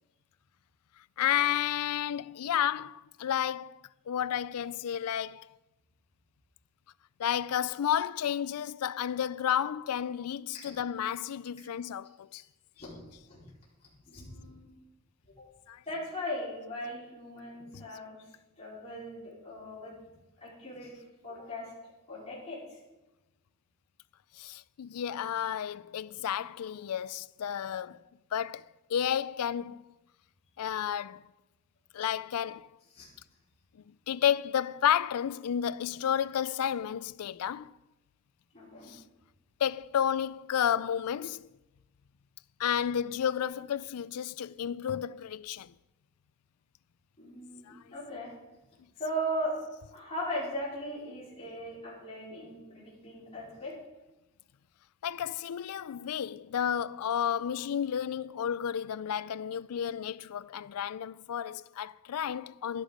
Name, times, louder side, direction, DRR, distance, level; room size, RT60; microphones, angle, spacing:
voice 1, 1.2-3.8 4.1-5.5 7.2-12.4 15.7-15.8 17.7-17.8 24.4-28.0 28.3-29.8 30.6-31.2 31.9-32.7 33.9-37.7 38.9-39.0 39.6-41.5 42.6-45.7 47.7-47.8 55.0-62.8, left 9 dB, 85° left, 0.4 m, -31 dB
voice 2, 14.1-14.7 15.2-15.4 15.8-18.2 18.6-19.9 20.4-20.9 21.2-21.7 22.1-22.8 32.9-33.1 38.5-38.9 47.2-48.3 49.0-49.6 49.9-53.7, equal, 30° left, 4.7 m, -38 dB
12.0 x 11.5 x 5.1 m
head